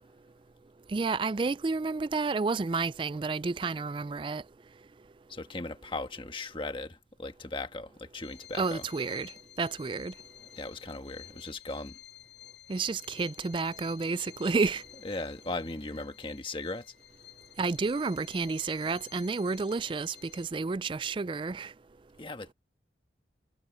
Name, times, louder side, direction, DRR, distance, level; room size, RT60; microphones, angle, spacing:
voice 1, 0.9-4.4 8.5-9.3 9.6-10.1 12.7-14.8 17.6-21.7, right 4 dB, 30° right, 0.3 m, -30 dB
voice 2, 5.3-8.8 10.6-12.0 15.0-16.9 22.2-22.5, left 2 dB, 30° left, 1.4 m, -38 dB
Bowed string instrument, 8.2-20.7, left 13 dB, 80° left, 7.4 m, -52 dB
head